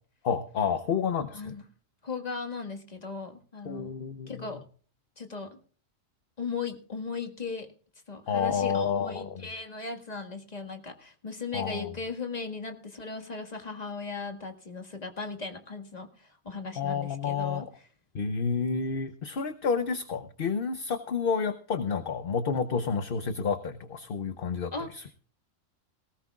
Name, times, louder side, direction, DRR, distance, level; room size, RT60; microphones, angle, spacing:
voice 1, 0.2-1.5 3.6-4.6 8.3-9.5 11.5-11.9 16.8-17.7 18.1-25.0, left 6 dB, 50° left, 9 dB, 0.9 m, -30 dB
voice 2, 2.0-4.6 5.2-5.6 6.4-7.7 8.1-17.7 24.7-24.9, left 4 dB, 30° left, 5 dB, 1.8 m, -37 dB
19.0 x 17.5 x 2.4 m, 0.42 s
omnidirectional pair, 1.4 m